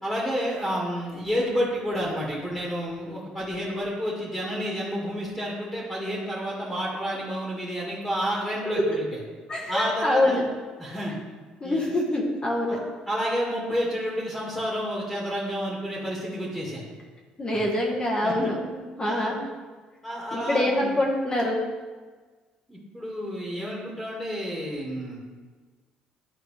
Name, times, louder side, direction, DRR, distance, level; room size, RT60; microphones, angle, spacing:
voice 1, 0.0-9.2 9.7-10.4 10.8-11.1 11.6-11.8 12.7-12.8 13.1-16.9 17.5-17.7 18.2-18.5 19.0-19.3 20.0-21.0 22.7-25.2, equal, 5° left, -5 dB, 2.0 m, -30 dB
voice 2, 9.5-10.4 11.6-12.8 17.4-19.4 20.3-21.6, left 1 dB, 30° left, -2 dB, 1.4 m, -25 dB
10.5 x 4.3 x 3.3 m, 1.4 s
supercardioid pair, 85°, 3 cm